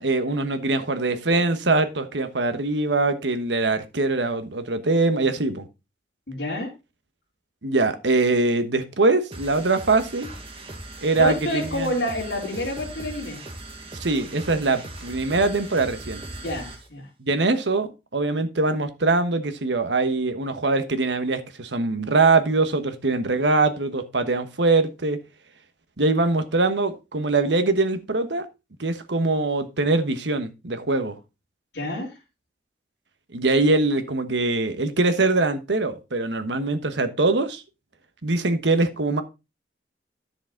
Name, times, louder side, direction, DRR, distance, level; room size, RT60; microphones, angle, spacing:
voice 1, 0.0-5.7 7.6-10.3 11.0-11.9 14.0-16.2 17.2-25.2 26.0-28.4 28.8-31.1 33.3-37.6 38.2-39.2, right 3 dB, 85° right, 1.2 m, -23 dB
voice 2, 6.3-6.7 11.2-13.4 16.4-17.1 31.7-32.2, left 1 dB, 70° left, 3.4 m, -28 dB
sound 1, 9.3-16.9, right 2 dB, 30° right, 1.7 m, -39 dB
10.5 x 6.8 x 3.9 m
head